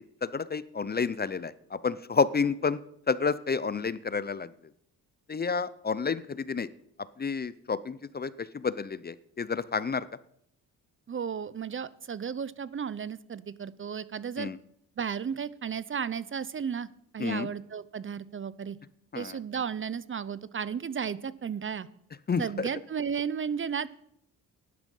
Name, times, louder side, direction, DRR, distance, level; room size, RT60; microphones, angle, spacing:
voice 1, 0.0-2.8 3.1-4.5 5.3-6.7 7.2-10.1 14.4-14.6 17.2-17.5 19.1-19.4 22.3-22.7, left 5 dB, 25° left, 18 dB, 0.6 m, -30 dB
voice 2, 11.1-14.5 15.0-16.9 17.1-18.8 19.1-21.9 22.4-23.9, right 7 dB, 35° right, 18 dB, 0.7 m, -34 dB
12.5 x 11.0 x 5.5 m, 0.71 s
cardioid pair, 80°, 37 cm